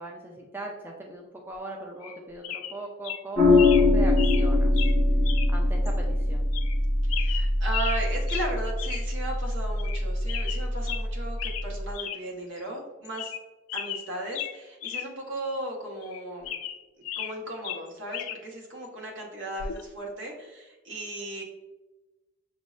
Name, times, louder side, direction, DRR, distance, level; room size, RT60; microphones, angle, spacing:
voice 1, 0.0-4.7 5.5-6.4, right 1 dB, 10° right, 0 dB, 0.3 m, -39 dB
sound 1, 2.0-2.2 2.4-2.8 3.0-3.2 3.6-3.9 4.2-4.4 4.8-4.9 5.2-5.5 5.8-5.9 6.5-6.8 7.1-8.0 8.3-8.5 8.8-9.0 9.3-9.4 9.8-10.0 10.3-11.0 11.4-11.7 11.9-12.2 12.6-12.7 13.0-13.4 13.7-15.1 15.4-15.5 16.0-17.3 17.6-18.4 19.6-19.8, left 10 dB, 80° left, 0.3 m, -35 dB
sound 2, 3.3-11.9, left 2 dB, 40° right, 1.3 m, -23 dB
voice 2, 7.1-13.3 13.7-16.5 17.2-21.4, right 1 dB, 65° right, -1 dB, 1.0 m, -36 dB
6.1 x 2.0 x 2.4 m, 1.1 s
head